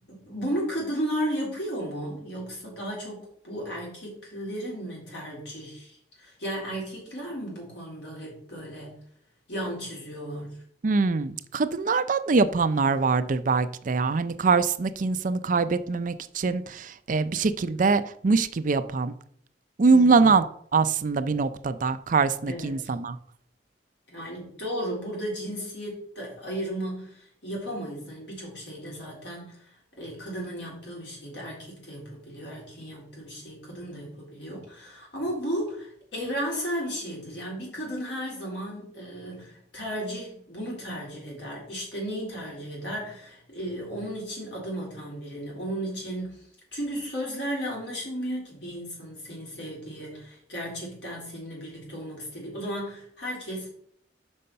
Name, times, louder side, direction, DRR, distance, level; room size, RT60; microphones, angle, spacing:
voice 1, 0.1-9.0 9.5-10.5 19.9-20.3 22.5-22.9 24.1-29.7 30.0-46.4 46.7-53.7, equal, 75° left, -3 dB, 3.7 m, -34 dB
voice 2, 10.8-19.1 19.8-20.4 20.7-23.2, right 4 dB, 45° right, 12 dB, 0.5 m, -23 dB
6.2 x 5.4 x 5.6 m, 0.63 s
head